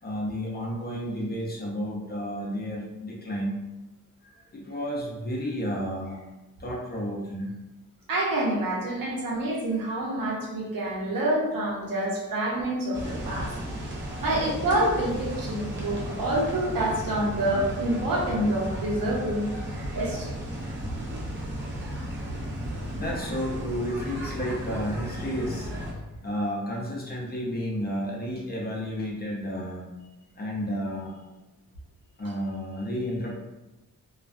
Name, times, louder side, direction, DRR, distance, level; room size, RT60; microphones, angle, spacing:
voice 1, 0.0-3.5 4.2-6.2 6.6-7.5 14.1-14.2 22.5-25.9 26.2-29.9 30.4-31.1 32.2-33.3, equal, 30° left, -3 dB, 0.5 m, -32 dB
voice 2, 8.1-13.5 14.2-19.5 19.9-20.3, right 1 dB, 75° right, -3 dB, 0.8 m, -27 dB
sound 1, 12.9-25.9, equal, 35° right, 0.6 m, -34 dB
2.2 x 2.2 x 2.5 m, 1.0 s
wide cardioid pair, 110°, 34 cm